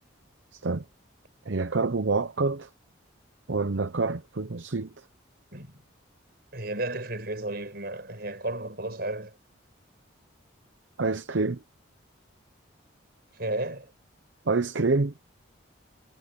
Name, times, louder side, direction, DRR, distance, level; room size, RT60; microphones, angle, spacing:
voice 1, 0.5-0.9 1.4-2.7 3.5-5.1 11.0-11.6 14.5-15.1, right 3 dB, 65° right, 0.8 m, -27 dB
voice 2, 5.5-5.8 6.5-9.4 13.3-13.9, right 2 dB, 50° right, 5.7 m, -33 dB
head